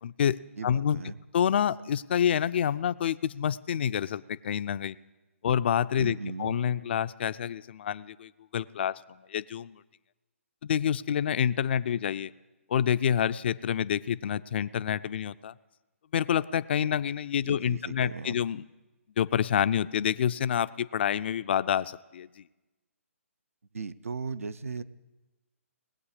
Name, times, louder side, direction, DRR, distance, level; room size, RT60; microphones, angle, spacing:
voice 1, 0.0-1.0 1.3-5.0 5.4-9.0 9.3-9.7 10.6-12.3 12.7-15.5 16.1-18.6 19.2-22.4, left 9 dB, 50° left, 15 dB, 0.3 m, -28 dB
voice 2, 0.6-1.2 6.0-6.6 17.4-18.4 23.7-24.8, right 4 dB, 75° right, 16 dB, 0.6 m, -37 dB
19.5 x 8.1 x 4.9 m, 1.1 s
figure-of-eight pair, 140°, 7 cm